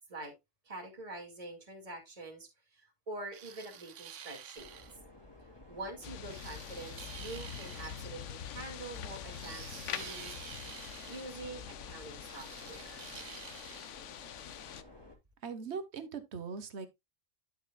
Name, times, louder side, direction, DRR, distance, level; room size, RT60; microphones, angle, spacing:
voice 1, 0.6-4.7 5.7-10.7 11.1-13.1, right 2 dB, 30° right, 2.3 m, -46 dB
sound 1, 3.3-5.0 6.3-8.1 9.3-11.3 12.3-13.9, right 10 dB, 90° right, 1.1 m, -49 dB
sound 2, 4.6-15.2, left 2 dB, 20° left, 2.5 m, -55 dB
sound 3, 6.0-14.8, left 9 dB, 85° left, 1.1 m, -45 dB
voice 2, 15.4-16.9, right 5 dB, 65° right, 1.4 m, -40 dB
12.0 x 6.5 x 2.3 m
omnidirectional pair, 1.2 m